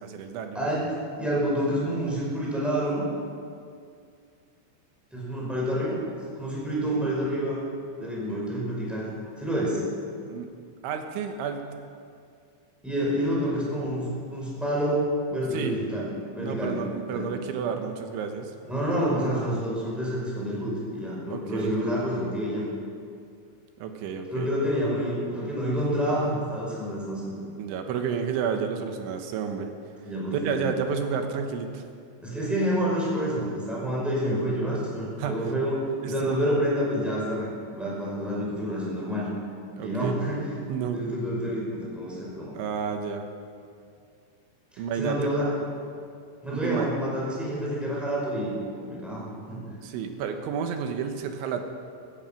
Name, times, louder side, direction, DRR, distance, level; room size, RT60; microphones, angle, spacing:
voice 1, 0.0-0.7 8.0-8.5 10.3-10.5 10.8-11.7 15.5-15.8 16.4-18.5 21.3-21.7 23.8-24.5 27.6-29.7 30.4-31.8 35.2-35.5 36.0-36.4 39.8-40.2 40.7-41.0 42.5-43.3 44.8-45.2 46.6-46.9 49.8-51.6, right 6 dB, 80° right, 6 dB, 3.4 m, -31 dB
voice 2, 0.5-0.9 1.2-3.1 5.1-6.0 6.3-7.6 8.0-9.1 9.3-9.9 12.8-15.0 15.3-16.8 17.1-17.3 18.6-22.6 24.3-27.4 30.0-30.6 32.2-35.8 36.0-39.3 39.8-40.5 40.9-42.6 45.0-45.5 46.4-49.6, equal, ahead, -6 dB, 4.7 m, -28 dB
15.0 x 15.0 x 5.9 m, 2.3 s
omnidirectional pair, 5.4 m